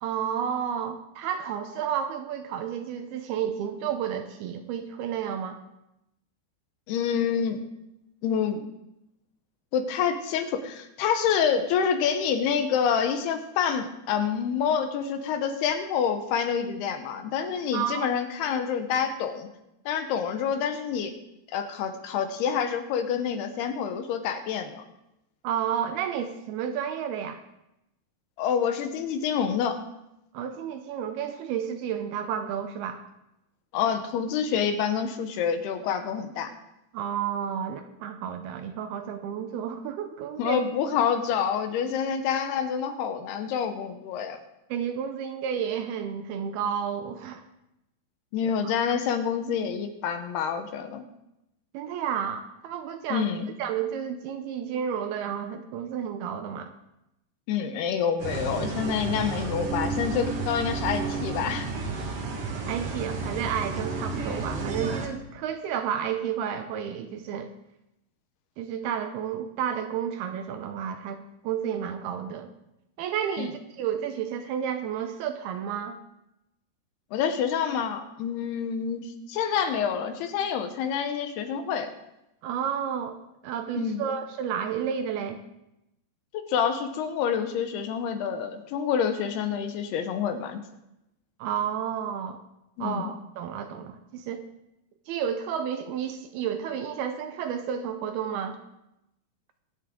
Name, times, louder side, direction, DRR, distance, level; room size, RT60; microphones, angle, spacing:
voice 1, 0.0-5.6 17.7-18.1 25.4-27.4 30.3-33.0 36.9-40.6 44.7-47.4 48.4-48.7 51.7-53.3 53.6-56.7 62.7-67.5 68.6-72.5 73.0-76.0 82.4-83.2 83.4-85.4 91.4-92.4 92.8-94.5 95.1-98.6, right 8 dB, 75° right, 7 dB, 2.5 m, -31 dB
voice 2, 6.9-7.6 8.2-8.7 9.7-19.5 19.9-21.1 21.5-24.8 28.4-29.8 33.7-36.5 40.4-44.4 48.3-51.0 53.1-53.5 57.5-61.7 73.4-73.5 77.1-81.9 83.8-84.0 86.3-90.6 92.8-93.1, left 7 dB, 75° left, 7 dB, 2.8 m, -27 dB
sound 1, 58.2-65.1, right 4 dB, 55° right, 1.7 m, -32 dB
23.5 x 8.5 x 3.7 m, 0.88 s
omnidirectional pair, 4.9 m